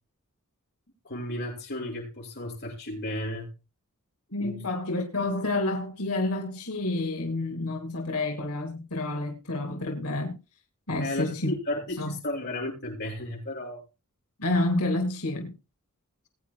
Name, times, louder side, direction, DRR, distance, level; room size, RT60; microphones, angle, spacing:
voice 1, 1.0-3.5 4.4-4.7 11.0-13.8, left 1 dB, 50° left, 6.3 m, -34 dB
voice 2, 4.3-10.4 10.9-11.5 12.0-12.1 14.4-15.5, left 2 dB, 90° left, 2.4 m, -29 dB
21.5 x 9.3 x 2.3 m
head